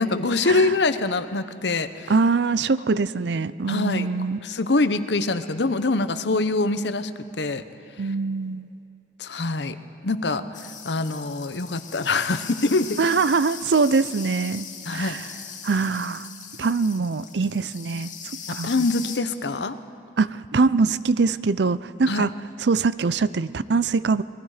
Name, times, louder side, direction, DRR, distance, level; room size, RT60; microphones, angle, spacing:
voice 1, 0.0-2.1 3.7-4.1 4.4-7.1 7.4-7.6 9.2-9.8 10.0-10.4 10.8-13.0 14.9-15.2 18.5-19.8 22.1-22.3, left 3 dB, 75° left, 11 dB, 0.9 m, -24 dB
voice 2, 2.1-4.4 8.0-8.7 13.0-15.2 15.6-16.3 16.6-18.1 18.5-18.7 20.2-22.3 22.6-24.2, right 4 dB, 70° right, 17 dB, 0.5 m, -23 dB
sound 1, 10.5-19.2, left 7 dB, 45° left, 1.9 m, -39 dB
29.0 x 21.0 x 5.0 m, 2.6 s
head